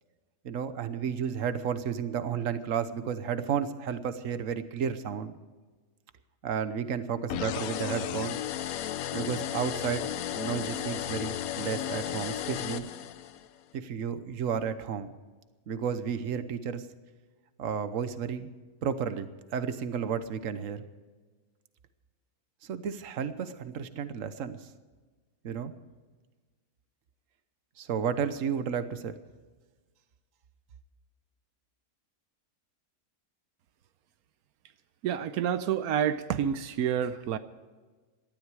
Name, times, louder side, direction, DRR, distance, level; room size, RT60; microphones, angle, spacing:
voice 1, 0.4-5.3 6.4-8.4 9.1-12.9 13.7-15.1 15.7-16.9 17.6-18.5 18.8-20.8 22.6-24.7 25.4-25.7 27.8-29.1, right 7 dB, 65° right, 12 dB, 1.3 m, -32 dB
sound 1, 7.3-13.5, left 11 dB, 75° left, 1.1 m, -34 dB
voice 2, 35.0-37.4, right 9 dB, 90° right, 12 dB, 1.2 m, -28 dB
18.0 x 13.0 x 4.8 m, 1.3 s
omnidirectional pair, 1.5 m